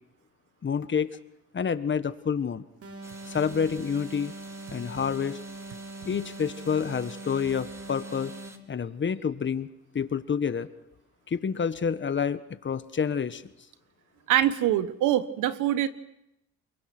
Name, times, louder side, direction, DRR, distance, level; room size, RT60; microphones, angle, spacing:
voice 1, 0.6-1.2 1.5-2.6 3.3-4.3 4.7-5.4 6.0-8.3 8.7-9.7 9.9-10.7 11.3-13.4, left 6 dB, 40° left, 12 dB, 1.5 m, -28 dB
sound 1, 2.8-8.7, right 2 dB, 50° right, 4.0 m, -42 dB
sound 2, 3.0-8.6, right 1 dB, 10° right, 2.4 m, -51 dB
voice 2, 14.3-15.9, right 12 dB, 90° right, 14 dB, 1.4 m, -24 dB
29.0 x 23.0 x 6.2 m, 0.82 s
cardioid pair, 90°, 30 cm